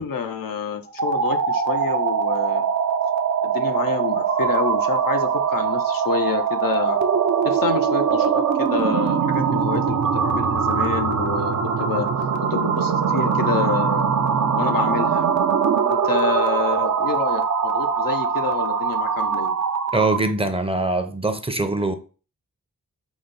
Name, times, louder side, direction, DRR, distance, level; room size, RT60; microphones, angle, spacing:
voice 1, 0.0-2.7 3.4-7.0 7.4-12.1 12.4-14.1 14.6-15.3 15.9-19.6, left 6 dB, 85° left, 0.6 m, -28 dB
sound 1, 0.9-20.3, right 6 dB, 60° right, 0.5 m, -22 dB
voice 2, 19.9-21.9, right 2 dB, 15° right, 0.5 m, -23 dB
4.9 x 2.1 x 3.9 m
cardioid pair, 55°, 33 cm